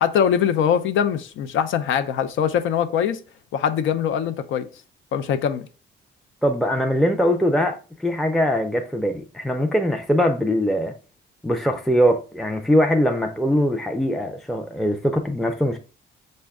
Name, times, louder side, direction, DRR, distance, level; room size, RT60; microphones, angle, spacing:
voice 1, 0.0-3.2 3.5-4.7 5.1-5.6, left 8 dB, 80° left, 0.5 m, -22 dB
voice 2, 6.4-10.9 11.4-15.8, equal, ahead, 0.4 m, -21 dB
5.2 x 2.2 x 3.5 m
cardioid pair, 90°, 20 cm